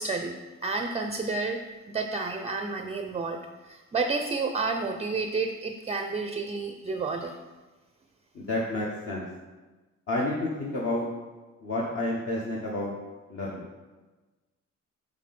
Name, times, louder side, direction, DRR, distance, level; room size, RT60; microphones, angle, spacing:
voice 1, 0.0-1.6 1.9-7.4, right 3 dB, 20° right, 6 dB, 0.5 m, -30 dB
voice 2, 8.3-9.3 10.1-11.0 11.6-12.9 13.3-13.6, left 1 dB, 50° left, -4 dB, 1.3 m, -30 dB
6.6 x 5.9 x 4.3 m, 1.2 s
cardioid pair, 90°, 30 cm